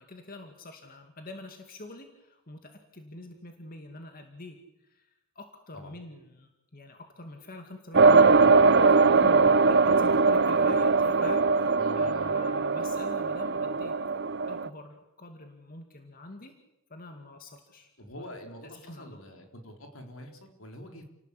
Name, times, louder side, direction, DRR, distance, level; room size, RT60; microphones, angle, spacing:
voice 1, 0.0-5.1 5.4-14.0 14.5-16.5 16.9-17.9 18.2-18.3 18.8-19.2, left 2 dB, 45° left, 5 dB, 2.4 m, -45 dB
sound 1, 7.9-14.7, right 4 dB, 55° right, 0.8 m, -21 dB
voice 2, 11.8-12.3 18.0-21.0, left 1 dB, 75° left, 4 dB, 4.0 m, -46 dB
29.5 x 18.0 x 8.4 m, 0.93 s
head